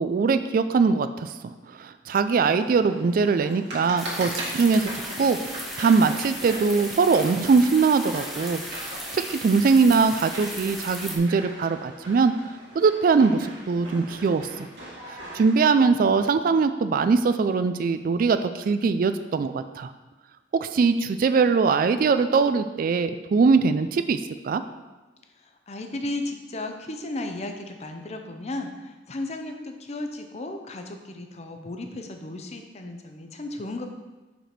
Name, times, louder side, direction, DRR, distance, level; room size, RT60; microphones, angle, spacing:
voice 1, 0.0-1.3 1.7-4.9 5.2-5.4 5.8-8.6 9.1-12.3 12.7-14.7 15.3-19.9 20.5-24.2 24.4-24.6, right 4 dB, 50° right, 10 dB, 0.3 m, -21 dB
sound 1, 2.5-15.6, right 1 dB, 75° right, 1.8 m, -40 dB
sound 2, 4.0-11.2, equal, ahead, 1.0 m, -36 dB
voice 2, 25.7-33.9, left 2 dB, 40° left, 5 dB, 0.7 m, -34 dB
5.1 x 5.0 x 5.9 m, 1.2 s
head